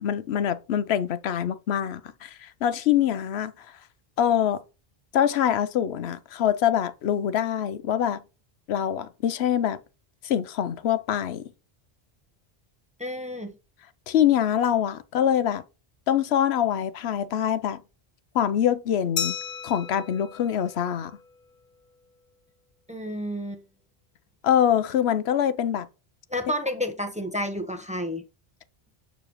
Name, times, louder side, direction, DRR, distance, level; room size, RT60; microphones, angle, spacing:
voice 1, 0.0-3.5 4.2-4.6 5.1-8.2 8.7-9.8 10.2-11.4 14.1-15.6 16.1-17.8 18.3-19.4 19.6-21.1 24.4-25.9, left 10 dB, 90° left, 0.9 m, -24 dB
voice 2, 13.0-13.5 22.9-23.6 26.3-28.2, equal, 5° right, 0.9 m, -30 dB
Glass, 19.2-21.6, left 7 dB, 60° left, 0.9 m, -35 dB
6.9 x 6.6 x 3.0 m
omnidirectional pair, 1.0 m